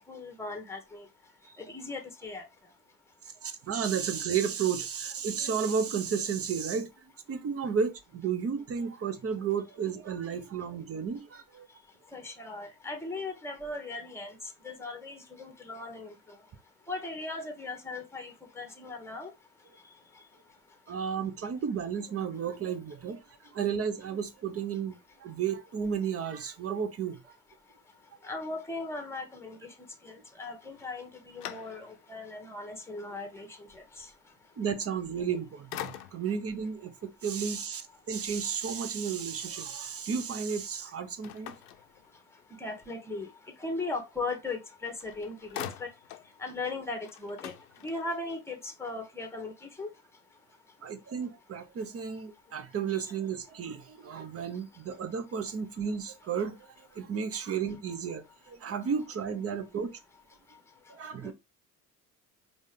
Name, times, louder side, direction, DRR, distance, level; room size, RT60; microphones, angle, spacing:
voice 1, 0.1-1.0 1.6-2.4 12.1-14.3 14.6-16.1 16.9-19.3 28.2-29.7 30.0-33.5 34.0-34.1 42.6-43.3 43.6-45.9 46.4-47.5 47.8-49.9 61.2-61.3, left 3 dB, 5° left, 1.2 m, -38 dB
voice 2, 3.4-11.7 20.9-23.2 23.5-27.2 34.6-41.6 50.8-56.6 56.9-60.0 60.9-61.3, right 7 dB, 30° right, 0.9 m, -33 dB
sound 1, 30.8-32.2 32.7-32.8 35.1-35.4 35.7-36.5 41.2-42.5 44.6-44.7 45.0-46.3 46.7-46.8 47.0-48.3, left 11 dB, 75° left, 0.6 m, -43 dB
5.1 x 2.5 x 3.4 m
figure-of-eight pair, 60°, 46 cm